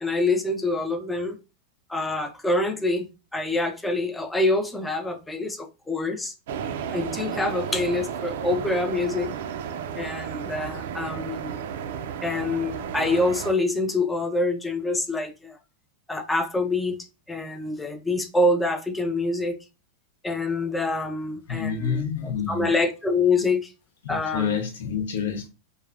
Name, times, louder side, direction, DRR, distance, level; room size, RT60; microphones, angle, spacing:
voice 1, 0.0-1.4 1.9-6.3 6.9-9.3 10.0-11.6 12.2-15.6 16.1-17.0 17.3-19.5 20.2-22.1 22.5-23.7 24.1-24.5, left 2 dB, 10° left, 0.4 m, -26 dB
sound 1, 6.5-13.5, right 7 dB, 70° right, 0.3 m, -33 dB
voice 2, 21.5-22.7 24.0-25.5, left 7 dB, 80° left, 0.7 m, -28 dB
3.1 x 2.0 x 2.3 m
supercardioid pair, 130°, 0 cm